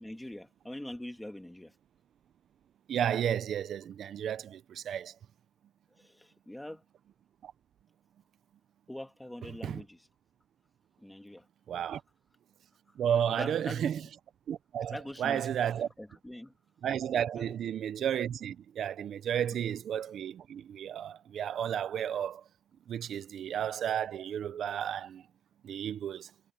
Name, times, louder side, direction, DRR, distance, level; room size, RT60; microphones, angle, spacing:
voice 1, 0.0-1.8 5.9-6.8 8.9-10.1 11.0-11.5 12.9-13.0 13.3-13.9 14.9-15.5 16.0-16.5 17.4-17.6, left 1 dB, 5° left, 2.2 m, -43 dB
voice 2, 2.9-5.1 7.4-7.5 9.6-9.8 11.7-12.0 13.0-14.0 14.5-15.9 16.8-22.4 22.9-25.2 25.6-26.3, right 9 dB, 60° right, 0.7 m, -32 dB
cardioid pair, 130°, 0 cm